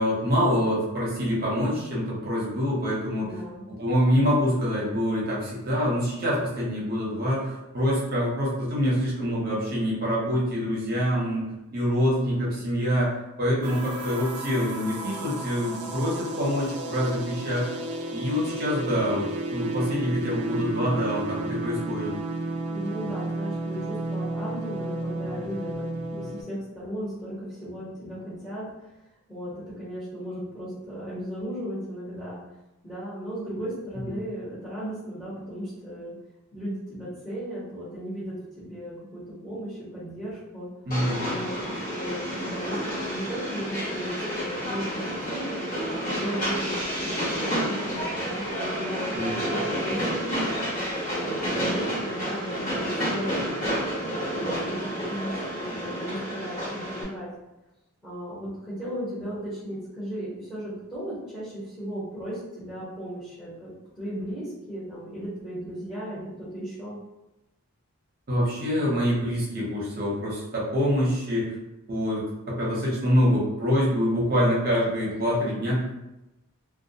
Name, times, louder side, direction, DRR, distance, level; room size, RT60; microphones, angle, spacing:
voice 1, 0.0-3.4 3.7-11.4 11.7-17.7 18.1-22.1 25.2-25.4 34.1-34.2 40.9-41.3 49.1-49.3 68.3-71.6 71.9-76.0, equal, 45° right, -6 dB, 0.8 m, -25 dB
voice 2, 3.2-3.6 22.7-28.6 29.3-32.4 32.8-36.1 36.5-40.7 41.2-45.7 46.1-50.5 51.1-53.5 54.0-57.3 58.0-67.0, equal, ahead, -12 dB, 0.8 m, -36 dB
sound 1, 13.6-26.4, right 2 dB, 85° right, 0.4 m, -32 dB
Train, 40.9-57.0, equal, 40° left, 0.9 m, -30 dB
2.2 x 2.1 x 2.7 m, 0.96 s
head